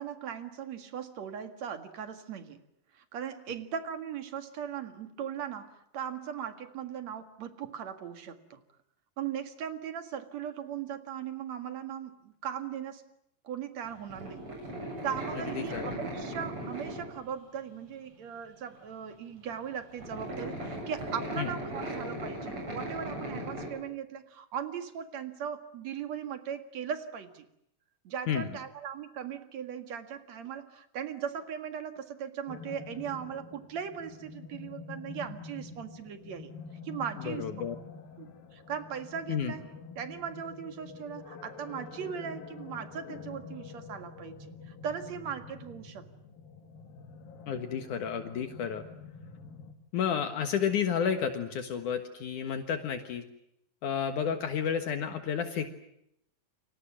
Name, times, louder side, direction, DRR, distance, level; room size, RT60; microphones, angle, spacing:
voice 1, 0.0-2.6 2.9-8.6 9.2-13.0 13.4-14.5 14.8-27.4 28.0-36.5 36.8-37.5 38.1-39.6 40.0-46.1, right 8 dB, 55° right, 8 dB, 2.9 m, -38 dB
sound 1, 13.8-17.3 17.8-17.9 19.1-19.2 19.5-23.7, right 1 dB, 40° right, 9.1 m, -38 dB
voice 2, 15.6-15.9 21.4-21.5 28.3-28.5 37.3-37.8 39.3-39.5 47.5-48.8 49.9-53.2 53.8-55.8, left 7 dB, 65° left, 7 dB, 2.8 m, -31 dB
sound 2, 32.5-49.7, left 5 dB, 90° left, 4.0 m, -47 dB
29.5 x 25.0 x 7.3 m, 0.76 s
omnidirectional pair, 4.0 m